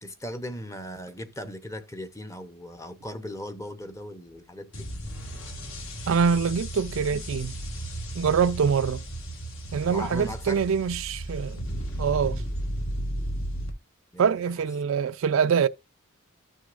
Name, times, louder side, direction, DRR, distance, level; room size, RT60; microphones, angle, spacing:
voice 1, 0.0-4.9 9.9-10.6 14.1-14.5, equal, 15° left, 0.7 m, -38 dB
sound 1, 4.7-13.7, right 1 dB, 65° left, 1.7 m, -34 dB
voice 2, 6.1-7.6 8.1-9.0 9.7-11.6 12.0-12.4 14.2-15.7, right 6 dB, 65° right, 0.4 m, -24 dB
13.5 x 6.4 x 2.5 m
head